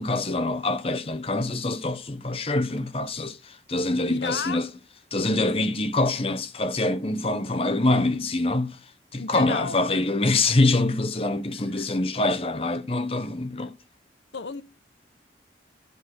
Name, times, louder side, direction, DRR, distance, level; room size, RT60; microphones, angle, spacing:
voice 1, 0.0-4.7 5.1-8.8 9.1-13.7, left 2 dB, 30° left, 0.9 m, -25 dB
voice 2, 4.0-4.6 9.1-10.0 11.7-11.9 13.6-13.7 14.3-14.6, left 5 dB, 80° left, 0.9 m, -33 dB
12.0 x 6.1 x 8.0 m
head